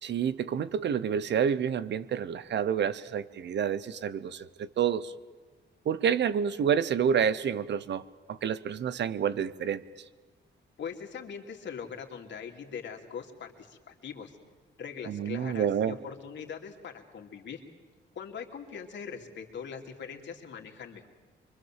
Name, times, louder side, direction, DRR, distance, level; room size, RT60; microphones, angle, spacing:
voice 1, 0.0-5.1 5.8-8.0 8.3-9.8 15.1-16.0, right 8 dB, 65° right, 16 dB, 0.9 m, -28 dB
voice 2, 10.8-14.4 14.8-17.6 18.1-21.1, left 6 dB, 70° left, 2 dB, 2.7 m, -41 dB
25.0 x 24.0 x 7.5 m, 1.3 s
cardioid pair, 110°, 19 cm